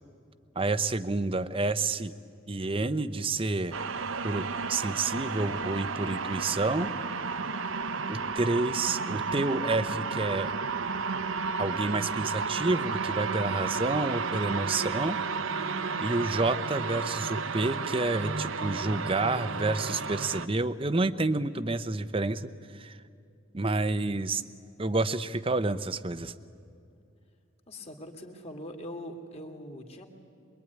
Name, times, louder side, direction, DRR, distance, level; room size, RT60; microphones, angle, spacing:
voice 1, 0.6-2.1 2.5-3.8 4.2-6.9 8.1-10.6 11.6-15.2 16.0-23.0 23.5-24.4 24.8-26.3, right 2 dB, 25° right, 13 dB, 0.7 m, -29 dB
sound 1, 3.7-20.5, right 5 dB, 75° right, 0.9 m, -32 dB
voice 2, 27.7-30.1, left 1 dB, 30° left, 3 dB, 2.5 m, -42 dB
24.5 x 22.5 x 9.6 m, 2.5 s
head